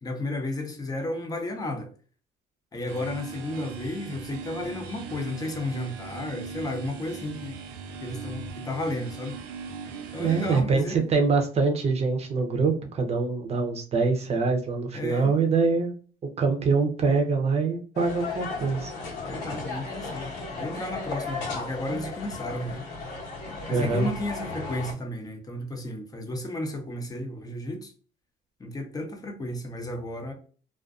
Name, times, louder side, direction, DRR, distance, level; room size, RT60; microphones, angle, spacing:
voice 1, 0.0-1.9 2.7-7.6 8.0-9.4 10.1-11.1 14.9-15.3 19.2-22.8 23.7-27.9 28.6-30.3, left 1 dB, 20° left, 0.7 m, -33 dB
sound 1, 2.9-10.6, right 5 dB, 90° right, 0.5 m, -40 dB
voice 2, 10.2-15.9 16.4-18.9 23.7-24.1, right 4 dB, 40° right, 0.7 m, -24 dB
sound 2, 17.9-24.9, left 3 dB, 90° left, 1.1 m, -35 dB
2.4 x 2.4 x 2.4 m
cardioid pair, 110°, 17 cm